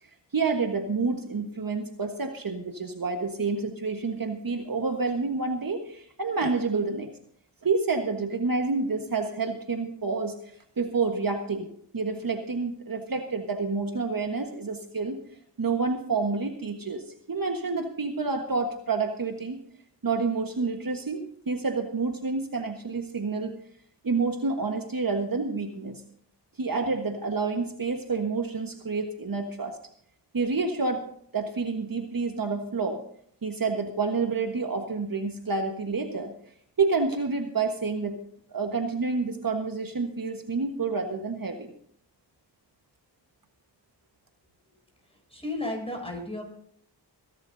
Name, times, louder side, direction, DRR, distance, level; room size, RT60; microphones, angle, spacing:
voice 1, 0.0-7.1 7.6-11.7 11.9-15.2 15.6-19.6 20.0-23.5 24.0-26.0 26.6-29.8 30.3-31.0 31.3-33.0 33.4-36.3 36.8-38.2 38.5-41.7, right 4 dB, 55° right, 5 dB, 1.5 m, -29 dB
voice 2, 45.3-46.4, left 2 dB, 15° left, 1 dB, 7.4 m, -33 dB
24.0 x 11.5 x 2.7 m, 0.65 s
cardioid pair, 45°, 42 cm